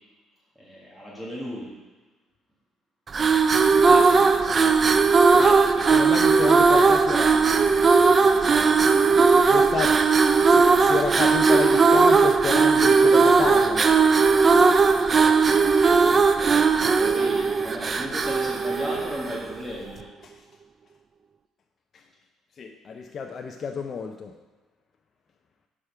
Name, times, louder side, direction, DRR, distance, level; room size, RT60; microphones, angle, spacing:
voice 1, 0.6-1.8 16.6-20.1, equal, 10° right, -4 dB, 1.5 m, -35 dB
sound 1, 3.1-19.5, right 4 dB, 30° right, 0.4 m, -18 dB
voice 2, 3.8-4.6 5.3-7.5 9.5-10.0 10.5-13.9 16.1-16.2 21.9-22.0 22.6-24.3, left 5 dB, 40° left, 3 dB, 0.5 m, -31 dB
6.3 x 4.9 x 5.6 m, 1.2 s
cardioid pair, 115°, 0 cm